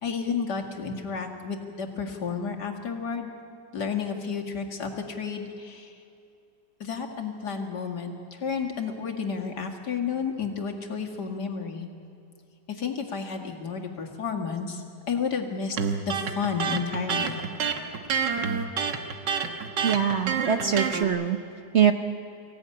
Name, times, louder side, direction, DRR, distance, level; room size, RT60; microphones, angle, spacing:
voice 1, 0.0-3.3 3.7-5.9 6.8-11.9 12.7-15.8 16.1-17.4, left 6 dB, 70° left, 2 dB, 2.6 m, -31 dB
Electric guitar, 15.8-21.0, right 6 dB, 90° right, 2.0 m, -28 dB
voice 2, 19.8-21.4 21.7-21.9, right 8 dB, 50° right, 8 dB, 1.0 m, -23 dB
24.0 x 16.5 x 9.9 m, 2.6 s
omnidirectional pair, 1.8 m